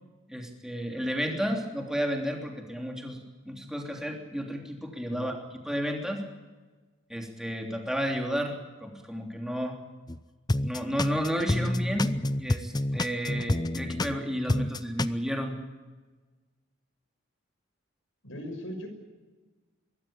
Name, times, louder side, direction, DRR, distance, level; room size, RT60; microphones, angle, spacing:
voice 1, 0.3-5.4 5.7-6.2 7.1-8.5 8.8-9.8 10.6-12.1 12.4-15.6, equal, 5° right, 2 dB, 3.2 m, -32 dB
sound 1, 10.1-10.2 10.5-14.2 14.5-15.1, left 1 dB, 20° left, 0.6 m, -28 dB
voice 2, 18.2-18.9, equal, 80° left, 4 dB, 6.0 m, -38 dB
23.0 x 16.0 x 8.8 m, 1.3 s
head